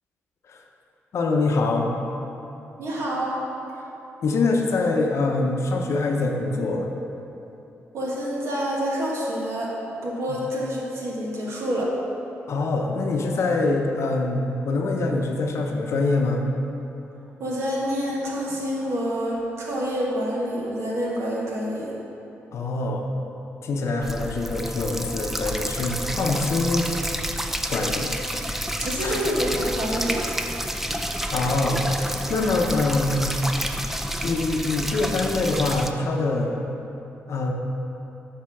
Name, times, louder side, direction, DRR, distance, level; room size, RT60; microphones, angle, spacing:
voice 1, 1.1-1.9 4.2-6.9 10.3-10.4 12.5-16.4 22.5-23.1 23.6-26.9 27.7-28.1 29.0-29.2 31.3-31.8 32.3-33.3 34.2-36.7 37.3-37.5, left 3 dB, 65° left, 2 dB, 0.8 m, -24 dB
voice 2, 2.8-3.4 7.9-9.7 10.0-11.9 17.4-22.0 28.4-28.5 28.8-30.2, equal, 65° right, -4 dB, 1.6 m, -27 dB
sound 1, 24.0-35.9, equal, 5° right, 0.4 m, -29 dB
7.6 x 3.4 x 5.9 m, 2.9 s
cardioid pair, 70°, 5 cm